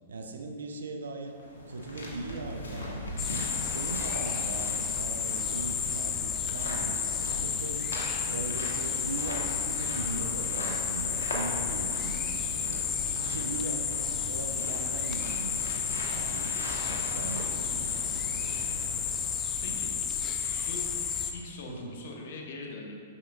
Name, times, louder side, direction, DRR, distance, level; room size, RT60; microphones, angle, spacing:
voice 1, 0.1-1.4 1.7-3.1 3.6-7.8 8.2-15.7 16.1-16.5 17.1-17.9 21.7-22.0, right 3 dB, 75° right, 4 dB, 0.6 m, -39 dB
sound 1, 1.2-19.5, left 1 dB, 80° left, 1.2 m, -40 dB
sound 2, 3.2-21.3, left 7 dB, 25° left, 0.5 m, -31 dB
voice 2, 20.4-20.8 21.3-22.9, left 3 dB, 55° left, 0 dB, 1.0 m, -41 dB
7.2 x 6.1 x 2.4 m, 2.2 s
hypercardioid pair, 110°, 0 cm